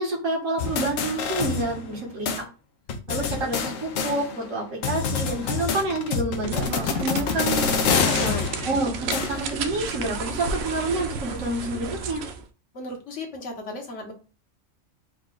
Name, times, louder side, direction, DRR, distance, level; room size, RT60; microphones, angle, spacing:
voice 1, 0.0-2.4 3.1-7.7 8.1-8.3 8.6-12.2, right 2 dB, 80° right, -1 dB, 1.8 m, -28 dB
sound 1, 0.6-2.0 2.3-2.4 2.9-4.5 4.8-9.6, left 6 dB, 80° left, 1.1 m, -27 dB
sound 2, 6.4-12.4, right 4 dB, 60° right, 0.8 m, -33 dB
voice 2, 7.9-8.5 12.7-14.1, left 2 dB, 65° left, 1 dB, 1.4 m, -34 dB
4.6 x 2.3 x 3.8 m, 0.34 s
omnidirectional pair, 1.4 m